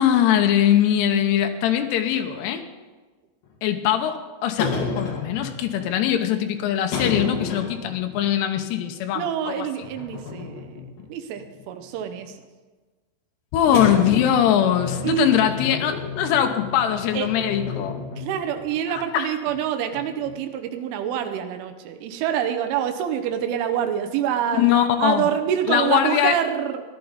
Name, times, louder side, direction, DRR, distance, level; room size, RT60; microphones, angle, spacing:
voice 1, 0.0-2.6 3.6-9.7 13.5-18.0 18.9-19.3 24.6-25.3 25.7-26.4, left 10 dB, 80° left, 6 dB, 2.5 m, -21 dB
sound 1, 3.4-3.5 4.6-5.9 6.9-8.2 8.6-8.7 9.8-11.1 11.4-12.3 13.7-18.7 18.9-19.0 19.5-19.6 19.9-20.5, left 5 dB, 55° left, 3.0 m, -31 dB
voice 2, 9.1-10.8 11.1-12.4 13.7-13.8 15.0-15.4 17.1-17.3 18.2-26.8, right 9 dB, 80° right, 7 dB, 3.3 m, -26 dB
17.5 x 11.5 x 4.0 m, 1.3 s
omnidirectional pair, 5.8 m